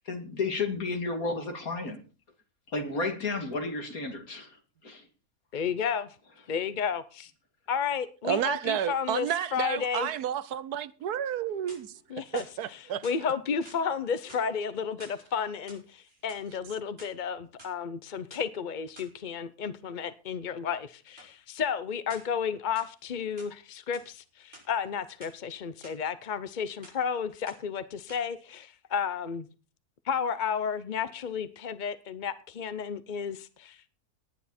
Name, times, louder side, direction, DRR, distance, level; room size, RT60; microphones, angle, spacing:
voice 1, 0.0-2.0 2.7-5.1, left 3 dB, 65° left, 2.9 m, -32 dB
voice 2, 5.5-6.1 6.5-7.3 7.7-10.1 12.1-29.5 30.0-34.0, left 7 dB, 45° left, 0.6 m, -32 dB
voice 3, 8.2-13.0, right 10 dB, 80° right, 1.3 m, -31 dB
sound 1, 11.4-12.0 12.4-13.2 13.6-13.9 14.2-15.2 15.6-16.5 16.8-17.7 18.3-18.5 19.0-19.2 21.2-21.3 22.1-22.4 22.8-23.6 23.9-24.1 24.4-25.4 25.8-26.0 26.3-26.6 26.8-27.1 27.5-27.8 28.1-28.2, right 1 dB, 35° right, 6.2 m, -52 dB
18.5 x 9.5 x 4.3 m
omnidirectional pair, 1.6 m